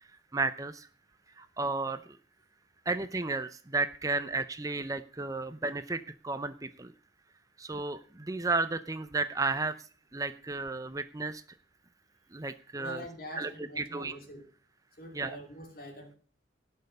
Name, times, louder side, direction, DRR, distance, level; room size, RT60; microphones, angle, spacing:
voice 1, 0.3-0.9 1.4-2.2 2.9-6.9 7.6-11.4 12.3-13.0 13.4-13.5 13.8-14.1 15.1-15.4, right 3 dB, 20° right, 11 dB, 0.6 m, -33 dB
voice 2, 12.8-14.5 15.0-16.2, equal, 50° left, 4 dB, 3.0 m, -45 dB
18.0 x 6.7 x 5.4 m, 0.43 s
head